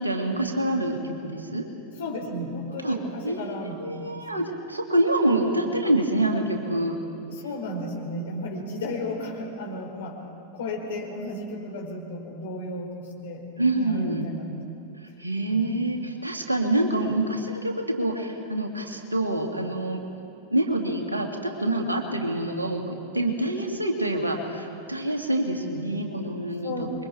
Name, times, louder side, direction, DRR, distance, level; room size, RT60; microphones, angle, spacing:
voice 1, 0.0-1.7 2.8-3.0 3.2-7.0 13.6-14.3 15.2-20.0 20.5-26.9, right 1 dB, 80° right, 2 dB, 2.4 m, -26 dB
voice 2, 1.9-4.3 7.3-10.2 10.5-13.5 13.7-14.6 15.5-15.7 26.6-26.9, left 1 dB, 60° left, 0 dB, 4.8 m, -34 dB
26.5 x 22.5 x 4.5 m, 2.6 s
figure-of-eight pair, 90°, 0 cm